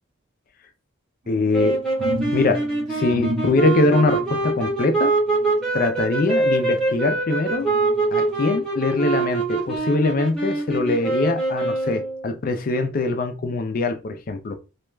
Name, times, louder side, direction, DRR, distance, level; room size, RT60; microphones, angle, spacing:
sound 1, 1.2-7.0 7.5-8.6 9.1-9.3, equal, 40° right, 0.4 m, -34 dB
voice 1, 1.3-1.8 2.3-2.6 2.9-5.1 5.7-7.7 8.1-14.6, left 3 dB, 40° left, 0.3 m, -22 dB
sound 2, 1.5-12.3, right 3 dB, 5° left, 0.7 m, -24 dB
2.3 x 2.1 x 3.1 m
head